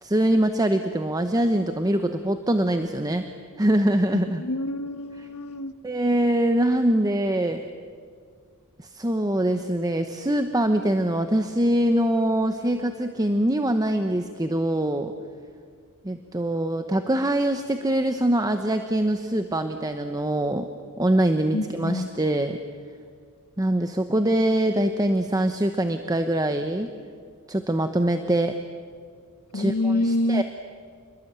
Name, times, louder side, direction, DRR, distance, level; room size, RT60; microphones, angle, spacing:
voice 1, 0.0-3.3 3.6-4.4 5.8-7.6 8.9-15.1 16.0-20.7 21.0-22.6 23.6-26.9 27.5-28.6 29.5-30.4, right 1 dB, 15° right, 7 dB, 1.0 m, -23 dB
voice 2, 4.4-5.7 21.5-22.1 29.5-30.4, left 1 dB, 80° left, 11 dB, 1.3 m, -26 dB
29.0 x 21.5 x 8.9 m, 2.1 s
head